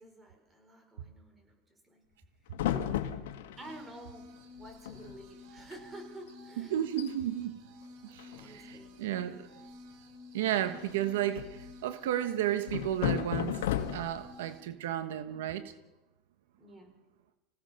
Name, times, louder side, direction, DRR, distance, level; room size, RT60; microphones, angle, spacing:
voice 1, 0.0-2.0 2.4-2.5 3.6-4.3 4.6-6.7 8.3-9.0 16.6-16.9, right 1 dB, 15° right, 5.7 m, -50 dB
sound 1, 2.5-3.7 4.6-4.7 4.8-5.2 5.6-5.8 6.3-6.4 6.8-7.1 8.2-8.7 10.7-11.7 12.7-14.3, left 11 dB, 90° left, 1.8 m, -34 dB
sound 2, 3.6-14.6, left 2 dB, 65° right, 3.0 m, -52 dB
voice 2, 6.6-7.6 8.0-9.5 10.3-13.7 13.9-15.7, right 11 dB, 85° right, 1.2 m, -33 dB
26.0 x 17.0 x 6.8 m
supercardioid pair, 125°, 0 cm